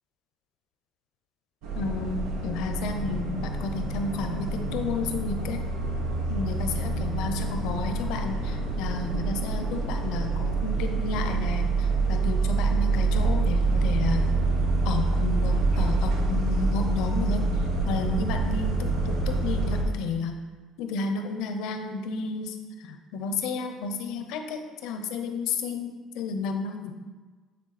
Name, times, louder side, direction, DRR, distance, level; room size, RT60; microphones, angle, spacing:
sound 1, 1.6-19.8, right 3 dB, 90° right, 1.0 m, -26 dB
voice 1, 1.7-5.6 6.3-14.3 14.8-17.5 17.8-20.4 20.8-22.6 22.8-26.9, left 4 dB, 80° left, 6 dB, 0.7 m, -32 dB
9.0 x 3.5 x 4.1 m, 1.4 s
cardioid pair, 110°, 0 cm